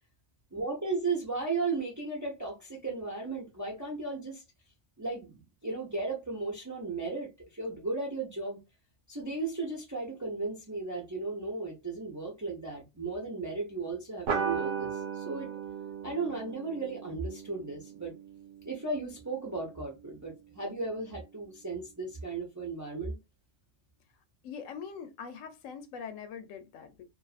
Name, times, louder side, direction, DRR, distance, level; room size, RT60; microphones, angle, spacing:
voice 1, 0.5-4.4 5.0-8.6 9.1-15.5 16.0-18.1 18.6-23.2, right 3 dB, 20° right, 0.5 m, -35 dB
sound 1, 14.3-19.2, right 6 dB, 75° right, 1.0 m, -37 dB
voice 2, 24.4-27.0, left 6 dB, 80° left, 0.9 m, -43 dB
2.5 x 2.4 x 2.3 m
omnidirectional pair, 1.3 m